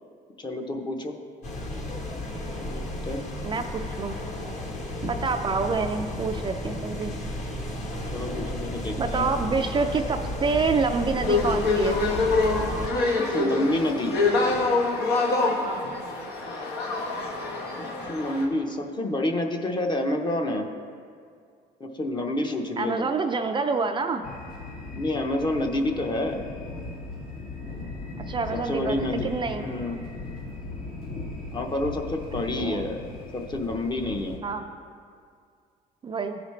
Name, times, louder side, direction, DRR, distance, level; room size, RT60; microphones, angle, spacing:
voice 1, 0.4-1.1 2.6-3.2 8.1-9.3 13.2-14.2 17.8-20.7 21.8-23.1 24.9-26.4 28.5-29.3 29.6-30.0 31.5-33.0 33.3-34.4, left 1 dB, 25° left, 4 dB, 0.8 m, -28 dB
sound 1, 1.4-12.9, left 1 dB, 45° left, 1.3 m, -33 dB
voice 2, 3.4-4.2 5.0-7.2 9.0-12.0 15.6-15.9 22.8-24.2 28.3-29.7 32.6-32.9 34.4-34.6 36.0-36.4, right 4 dB, 30° right, 5 dB, 0.4 m, -27 dB
sound 2, 11.2-18.5, left 3 dB, 75° left, 1.2 m, -25 dB
sound 3, 24.2-34.4, left 2 dB, 60° left, 1.6 m, -38 dB
14.5 x 5.0 x 3.2 m, 2.2 s
cardioid pair, 110°, 17 cm